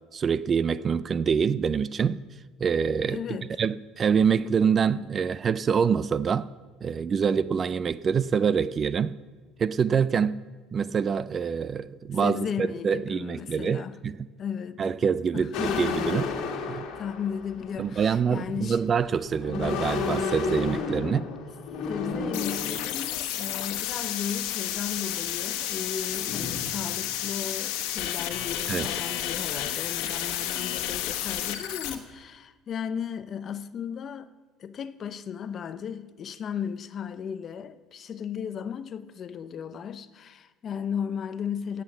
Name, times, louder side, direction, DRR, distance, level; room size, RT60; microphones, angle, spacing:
voice 1, 0.1-2.2 2.6-6.5 6.8-9.2 9.6-10.4 10.7-14.3 14.8-16.3 16.7-16.9 17.8-21.3 28.7-28.9, right 6 dB, 25° right, 0.4 m, -25 dB
voice 2, 3.1-3.5 12.2-14.0 14.4-14.8 15.3-15.9 17.0-18.8 21.8-34.3 34.6-41.8, left 7 dB, 35° left, 0.6 m, -35 dB
sound 1, 15.5-18.1 19.0-23.1 23.9-24.1 24.5-25.7 26.2-26.8, left 4 dB, 65° left, 2.1 m, -32 dB
sound 2, 22.3-31.9, left 12 dB, 90° left, 1.3 m, -31 dB
17.0 x 8.4 x 7.1 m
cardioid pair, 150°, 0 cm